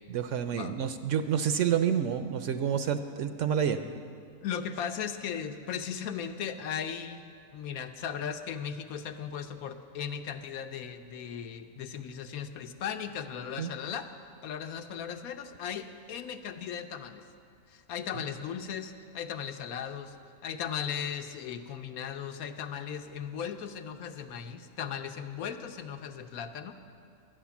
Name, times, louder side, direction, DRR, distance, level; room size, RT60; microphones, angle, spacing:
voice 1, 0.1-3.8 13.6-13.7 18.1-18.2, right 8 dB, 70° right, 9 dB, 0.8 m, -29 dB
voice 2, 4.4-7.2 7.5-14.1 14.4-17.2 17.7-20.1 20.4-26.7, left 8 dB, 80° left, 8 dB, 1.1 m, -37 dB
11.0 x 10.0 x 7.0 m, 2.3 s
omnidirectional pair, 1.5 m